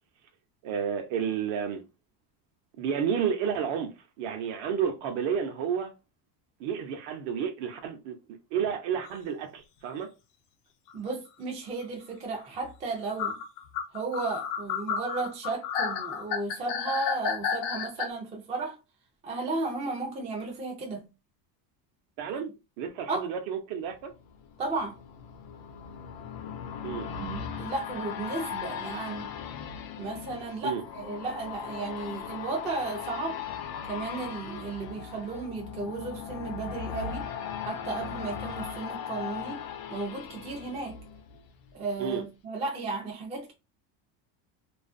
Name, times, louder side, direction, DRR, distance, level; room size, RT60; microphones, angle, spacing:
voice 1, 0.6-1.8 2.8-3.9 4.2-5.9 6.6-8.2 8.5-10.1 22.2-22.5 22.8-24.1 26.8-27.1 30.6-30.8 42.0-42.2, right 7 dB, 60° right, 0.7 m, -31 dB
sound 1, 10.9-11.0 12.4-12.5 13.2-18.1, left 7 dB, 75° left, 0.7 m, -31 dB
voice 2, 10.9-13.4 13.9-18.8 19.2-21.0 23.1-23.3 24.6-25.0 27.2-29.3 30.0-33.4 33.9-37.3 37.6-39.6 39.9-41.0 41.7-43.5, right 3 dB, 15° right, 0.3 m, -34 dB
sound 2, 23.9-41.7 42.1-42.2, left 7 dB, 50° left, 0.4 m, -38 dB
2.4 x 2.4 x 2.4 m
cardioid pair, 150°, 49 cm